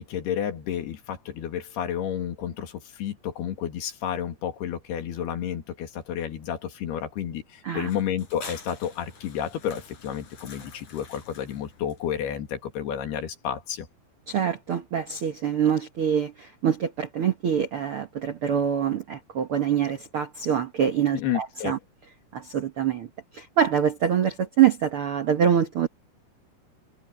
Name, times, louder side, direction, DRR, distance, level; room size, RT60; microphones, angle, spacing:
voice 1, 0.0-13.9 21.1-21.8, left 9 dB, 75° left, 4.3 m, -31 dB
sound 1, 7.8-12.4, left 4 dB, 50° left, 5.1 m, -46 dB
voice 2, 14.3-21.8 22.3-25.9, right 8 dB, 85° right, 1.2 m, -25 dB
omnidirectional pair, 4.6 m